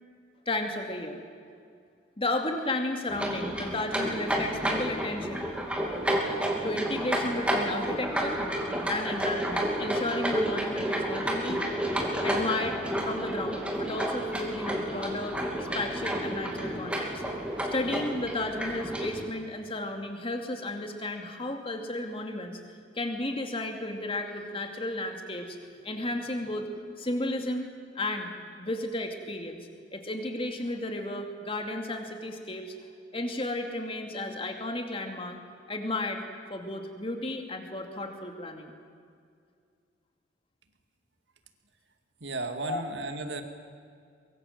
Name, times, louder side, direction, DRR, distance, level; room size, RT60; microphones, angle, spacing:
voice 1, 0.5-1.2 2.2-5.5 6.6-8.4 8.9-11.6 12.2-15.4 15.7-17.2 17.7-22.6 22.9-25.6 25.8-26.7 27.0-28.3 28.6-29.6 29.9-32.7 33.1-35.4 35.7-36.2 36.5-38.7 42.6-42.8, left 2 dB, 30° left, 4 dB, 2.5 m, -33 dB
sound 1, 3.1-19.3, equal, 5° right, 2.9 m, -30 dB
voice 2, 42.2-43.4, right 2 dB, 60° right, 6 dB, 2.2 m, -34 dB
24.0 x 23.5 x 7.8 m, 2.3 s
head